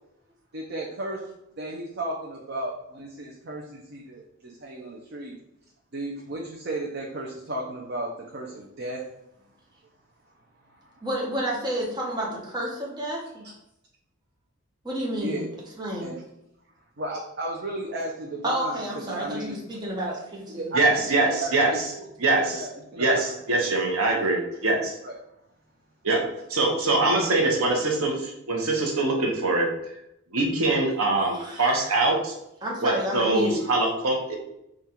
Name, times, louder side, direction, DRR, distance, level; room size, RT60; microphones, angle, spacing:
voice 1, 0.5-1.2 1.6-5.4 5.9-9.0 10.8-10.9 15.2-15.5 16.0-16.2 17.0-19.6 20.5-21.1 21.4-22.0 22.3-23.6 25.0-25.2, right 1 dB, 50° right, -2 dB, 0.5 m, -34 dB
voice 2, 11.0-13.4 14.8-15.5 15.8-16.1 18.4-20.7 31.2-32.0 32.6-33.7, right 1 dB, 20° right, -3 dB, 0.8 m, -30 dB
voice 3, 20.7-21.9 22.2-22.6 23.0-24.9 26.0-26.2 26.5-29.7 30.3-32.3 32.8-34.4, right 2 dB, 75° right, 1 dB, 0.9 m, -23 dB
3.7 x 2.4 x 4.2 m, 0.82 s
head